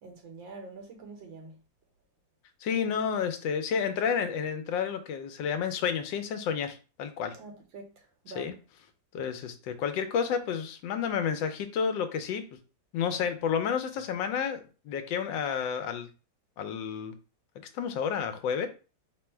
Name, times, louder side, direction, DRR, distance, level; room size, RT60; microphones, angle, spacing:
voice 1, 0.0-1.6 7.3-8.5, right 3 dB, 80° right, 1.6 m, -46 dB
voice 2, 2.6-7.4 8.4-8.5 9.1-12.4 12.9-16.1 16.6-17.1 17.7-18.7, left 7 dB, 80° left, 1.3 m, -30 dB
3.6 x 2.1 x 4.4 m
omnidirectional pair, 2.0 m